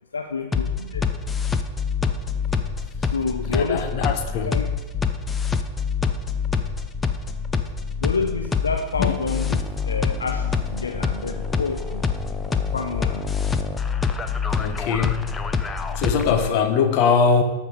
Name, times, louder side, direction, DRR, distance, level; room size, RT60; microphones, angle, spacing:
voice 1, 0.1-1.0 3.1-3.9 4.5-4.7 8.0-12.0 12.5-13.2 16.2-16.6, left 4 dB, 75° left, 5 dB, 0.7 m, -28 dB
sound 1, 0.5-16.5, left 5 dB, 15° left, 0.8 m, -25 dB
voice 2, 3.5-4.5 9.0-9.1 14.6-15.3 16.0-17.4, left 5 dB, 45° left, 6 dB, 1.5 m, -21 dB
13.5 x 5.4 x 6.8 m, 1.2 s
figure-of-eight pair, 90°, 0 cm